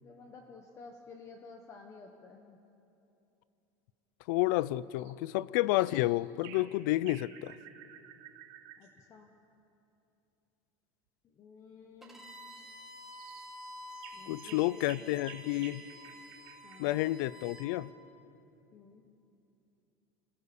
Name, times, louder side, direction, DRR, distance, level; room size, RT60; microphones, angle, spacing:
voice 1, 0.0-2.6 8.8-9.3 11.2-12.2 14.1-15.7 16.6-17.0 18.7-19.0, left 4 dB, 30° left, 3 dB, 1.3 m, -52 dB
voice 2, 4.3-7.5 14.3-15.8 16.8-17.9, left 17 dB, 75° left, 20 dB, 0.5 m, -30 dB
sound 1, 4.9-5.1 5.7-6.1 6.4-6.7 7.1-8.9 12.4-12.6 13.1-13.5 13.9-16.9, right 10 dB, 70° right, 3.9 m, -52 dB
Bowed string instrument, 12.0-17.7, equal, 5° right, 2.7 m, -50 dB
26.5 x 20.0 x 7.1 m, 2.8 s
cardioid pair, 160°, 10 cm